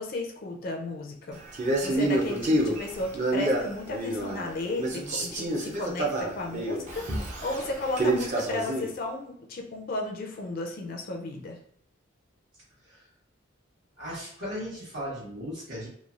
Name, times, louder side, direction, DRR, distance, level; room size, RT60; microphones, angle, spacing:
voice 1, 0.0-1.4 1.8-11.6, left 2 dB, 50° left, 2 dB, 0.4 m, -34 dB
Male speech man speaking, 1.5-4.5 4.8-8.9, right 1 dB, 35° right, 0.5 m, -28 dB
voice 2, 14.0-15.9, equal, 75° right, -12 dB, 1.2 m, -37 dB
3.1 x 2.2 x 2.4 m, 0.62 s
head